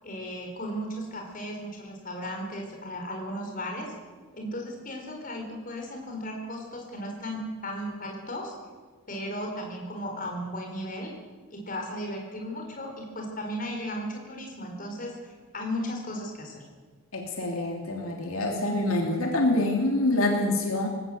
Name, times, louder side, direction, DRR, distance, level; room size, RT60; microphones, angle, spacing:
voice 1, 0.0-3.9 4.3-8.5 9.1-11.1 11.5-16.6, equal, 40° left, 1 dB, 4.4 m, -35 dB
voice 2, 17.1-20.9, left 1 dB, 75° left, 1 dB, 3.1 m, -26 dB
19.5 x 17.0 x 7.9 m, 1.4 s
head